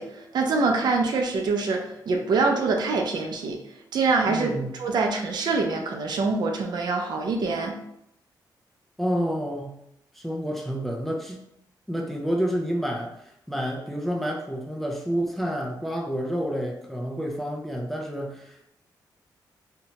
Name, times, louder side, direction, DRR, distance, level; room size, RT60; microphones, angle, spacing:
voice 1, 0.0-3.6 3.9-7.8, right 3 dB, 65° right, 2 dB, 0.4 m, -25 dB
voice 2, 4.3-4.7 9.0-9.8 10.2-11.4 11.9-13.1 13.5-18.7, equal, 5° left, 0 dB, 0.3 m, -29 dB
2.7 x 2.2 x 2.8 m, 0.76 s
wide cardioid pair, 160°, 8 cm